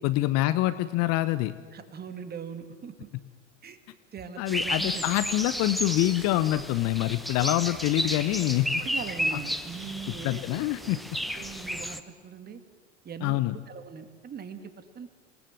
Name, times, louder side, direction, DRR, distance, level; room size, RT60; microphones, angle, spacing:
voice 1, 0.0-1.5 4.4-8.7 10.1-11.0 13.2-13.5, left 16 dB, 40° left, 13 dB, 1.1 m, -26 dB
voice 2, 1.7-2.9 3.6-3.8 4.1-5.0 8.8-10.9 11.3-12.6 13.0-13.4 13.7-15.1, right 6 dB, 25° right, 9 dB, 2.2 m, -41 dB
sound 1, 4.5-12.0, equal, ahead, 1.3 m, -33 dB
27.0 x 19.0 x 7.8 m, 1.4 s
figure-of-eight pair, 80°, 37 cm